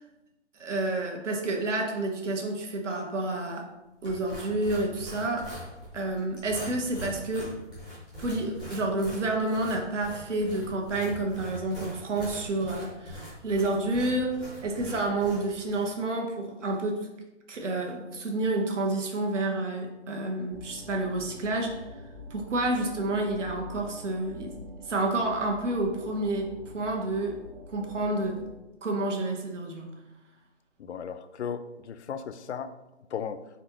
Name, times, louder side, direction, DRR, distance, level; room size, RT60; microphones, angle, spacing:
voice 1, 0.6-3.7 4.0-5.5 5.9-7.6 8.2-17.1 17.5-21.9 22.3-24.5 24.8-27.4 27.7-28.4 28.8-29.9, right 2 dB, 75° right, 1 dB, 1.2 m, -29 dB
sound 1, 4.0-15.9, equal, 5° right, 0.5 m, -43 dB
sound 2, 20.5-28.5, left 1 dB, 60° right, 1.5 m, -45 dB
voice 2, 30.8-32.7 33.1-33.4, left 7 dB, 65° left, 11 dB, 0.5 m, -36 dB
4.1 x 3.7 x 3.0 m, 0.99 s
hypercardioid pair, 170°, 36 cm